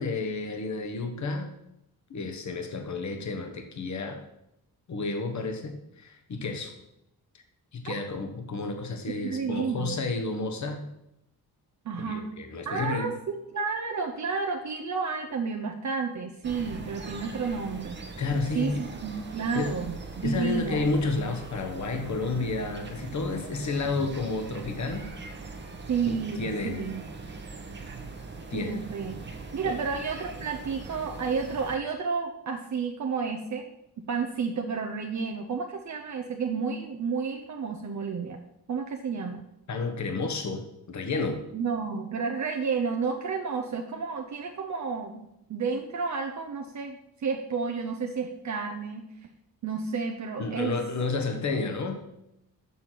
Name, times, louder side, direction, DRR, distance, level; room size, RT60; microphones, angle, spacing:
voice 1, 0.0-1.5 2.1-4.2 4.9-6.7 7.7-10.9 12.0-13.1 18.2-18.8 19.5-19.7 20.2-25.0 26.1-26.8 28.5-28.7 29.6-29.7 39.7-41.4 50.4-52.0, left 3 dB, 50° left, 5 dB, 1.3 m, -31 dB
voice 2, 9.2-10.0 11.8-12.3 12.7-18.0 18.5-20.9 25.9-27.0 28.5-29.2 29.5-33.7 34.0-38.4 38.7-39.5 41.5-49.3 49.6-50.8, right 5 dB, 50° right, 2 dB, 0.8 m, -31 dB
sound 1, 16.4-31.8, right 3 dB, 30° right, 1.1 m, -41 dB
7.1 x 6.6 x 5.8 m, 0.83 s
wide cardioid pair, 140°, 37 cm